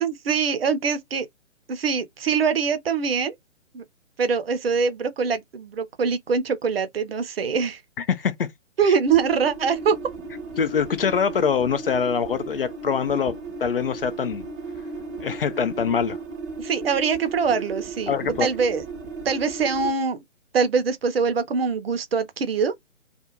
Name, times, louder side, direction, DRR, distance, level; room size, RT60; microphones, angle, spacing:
voice 1, 0.0-1.3 1.7-3.3 3.7-3.8 4.2-7.8 8.8-10.0 16.6-18.1 18.4-18.8 19.2-20.2 20.5-22.7, right 5 dB, 50° right, 0.7 m, -23 dB
voice 2, 8.0-8.5 10.6-14.5 15.2-16.2 18.1-18.5, left 6 dB, 50° left, 0.5 m, -24 dB
sound 1, 9.1-19.9, right 4 dB, 15° right, 0.6 m, -35 dB
2.5 x 2.3 x 2.9 m
figure-of-eight pair, 135°, 38 cm